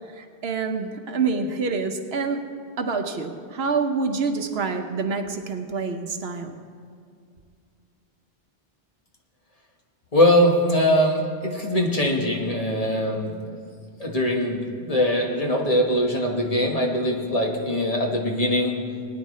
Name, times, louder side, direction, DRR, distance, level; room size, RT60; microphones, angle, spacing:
voice 1, 0.1-6.6, right 4 dB, 80° right, 6 dB, 1.1 m, -27 dB
voice 2, 10.1-13.6 14.0-18.8, left 1 dB, 35° left, -1 dB, 1.6 m, -22 dB
20.0 x 9.7 x 3.2 m, 2.3 s
omnidirectional pair, 1.0 m